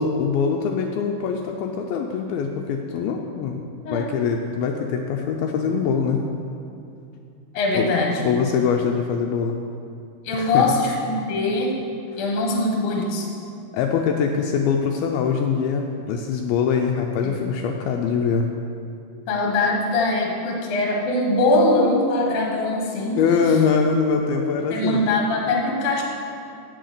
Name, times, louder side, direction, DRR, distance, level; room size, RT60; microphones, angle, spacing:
voice 1, 0.0-3.6 3.9-6.3 7.7-7.9 8.2-9.6 10.3-10.7 13.7-18.5 23.2-25.1, left 6 dB, 80° left, 2 dB, 2.3 m, -23 dB
voice 2, 7.5-8.3 10.2-11.8 12.2-13.3 17.2-17.5 19.3-23.5 24.7-26.0, left 2 dB, 55° left, 0 dB, 1.9 m, -22 dB
8.5 x 7.8 x 6.6 m, 2.5 s
omnidirectional pair, 4.5 m